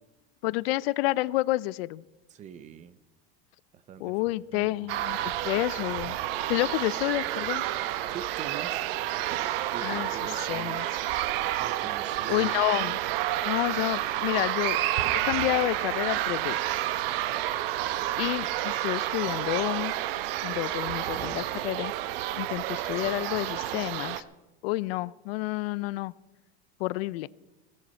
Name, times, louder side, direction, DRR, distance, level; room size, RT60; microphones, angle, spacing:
voice 1, 0.4-2.0 4.0-6.2 6.5-7.6 9.8-10.1 10.5-10.9 12.3-13.0 13.4-14.8 15.1-16.7 18.2-19.9 20.4-21.9 22.4-24.2 24.6-26.1 26.8-27.3, left 19 dB, 70° left, 20 dB, 0.5 m, -29 dB
voice 2, 2.3-3.0 3.7-4.9 8.1-8.9 9.7-10.8 11.6-12.6, right 9 dB, 25° right, 15 dB, 0.6 m, -44 dB
sound 1, 4.9-24.2, right 14 dB, 65° right, 0.9 m, -30 dB
16.5 x 15.0 x 4.3 m, 1.1 s
supercardioid pair, 160°, 31 cm